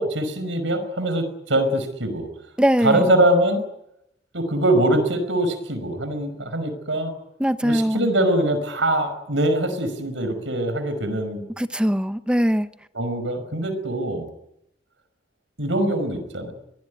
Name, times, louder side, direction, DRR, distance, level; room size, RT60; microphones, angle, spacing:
voice 1, 0.0-2.3 2.8-3.6 4.3-7.1 7.6-11.4 12.9-14.3 15.6-16.5, right 1 dB, 90° right, 9 dB, 5.5 m, -23 dB
voice 2, 2.6-3.0 7.4-8.0 11.6-12.7, equal, 5° right, 11 dB, 0.9 m, -21 dB
23.5 x 19.5 x 9.6 m, 0.84 s
head